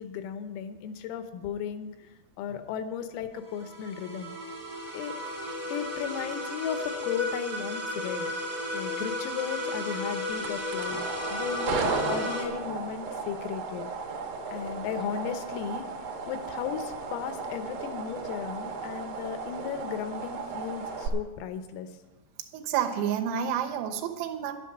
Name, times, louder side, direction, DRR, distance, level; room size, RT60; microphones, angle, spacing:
voice 1, 0.0-1.9 2.4-4.3 4.9-5.3 5.7-8.3 8.7-11.0 11.3-13.9 14.5-15.8 16.3-21.9, left 8 dB, 85° left, 9 dB, 3.6 m, -35 dB
sound 1, 3.4-12.5, left 1 dB, 15° right, 1.0 m, -34 dB
sound 2, 10.3-21.1, right 4 dB, 65° right, 2.4 m, -35 dB
voice 2, 22.5-24.5, right 9 dB, 80° right, 6 dB, 3.6 m, -30 dB
12.0 x 11.0 x 6.1 m, 1.1 s
omnidirectional pair, 5.9 m